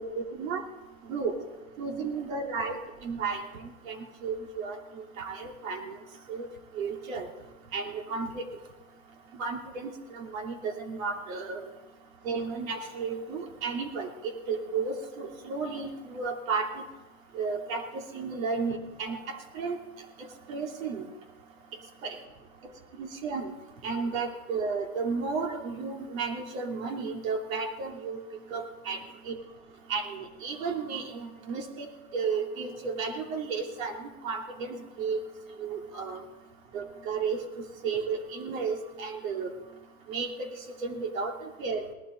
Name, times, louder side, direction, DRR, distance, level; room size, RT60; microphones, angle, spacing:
voice 1, 0.0-0.6 1.1-1.4 1.8-6.0 6.3-6.5 6.7-7.3 7.7-8.4 9.3-11.7 12.2-16.7 17.3-19.8 20.5-21.0 22.0-22.2 23.0-23.5 23.8-28.2 28.5-29.0 29.2-29.4 29.9-35.2 35.6-36.2 36.7-39.5 40.1-41.9, right 4 dB, 85° right, 3 dB, 2.9 m, -33 dB
18.5 x 12.5 x 3.9 m, 1.0 s
supercardioid pair, 130°, 40 cm